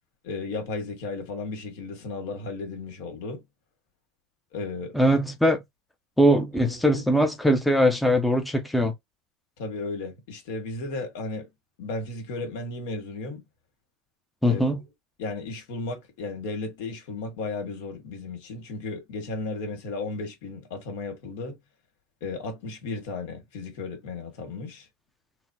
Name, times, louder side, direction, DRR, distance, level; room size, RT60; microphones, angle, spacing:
voice 1, 0.2-3.4 4.5-4.9 6.3-7.0 9.6-11.5 11.8-13.4 14.5-14.6 15.2-21.6 22.2-24.9, left 3 dB, 80° left, 1.7 m, -34 dB
voice 2, 4.9-5.6 6.2-8.9 14.4-14.8, equal, 5° left, 0.6 m, -21 dB
4.0 x 2.1 x 2.7 m
supercardioid pair, 135°, 0 cm